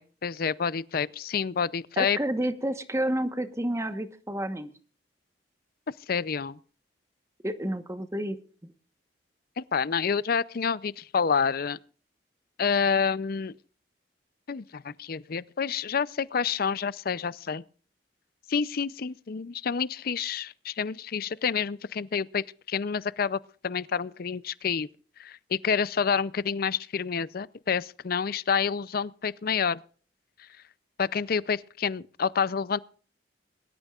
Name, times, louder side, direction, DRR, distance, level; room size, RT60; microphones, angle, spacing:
voice 1, 0.0-2.2 6.1-6.6 9.6-11.8 12.6-13.5 14.5-17.6 18.5-24.9 25.2-29.8 31.0-32.8, left 6 dB, 55° left, 0.5 m, -28 dB
voice 2, 2.0-4.7 7.4-8.7, right 1 dB, 15° right, 1.1 m, -30 dB
22.0 x 12.5 x 2.4 m
head